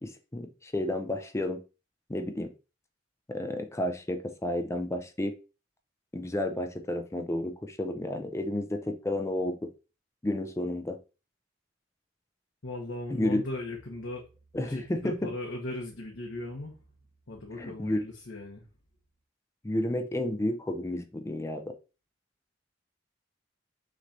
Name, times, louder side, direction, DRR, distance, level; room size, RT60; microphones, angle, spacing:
voice 1, 0.0-1.6 2.1-2.5 3.3-5.4 6.1-9.7 10.2-11.0 13.1-13.4 14.5-15.3 17.6-18.0 19.6-21.7, left 1 dB, 15° left, 6 dB, 0.4 m, -31 dB
voice 2, 12.6-14.2 14.5-16.7 17.3-18.6, left 2 dB, 80° left, 0 dB, 1.0 m, -38 dB
6.1 x 3.1 x 2.6 m, 0.31 s
head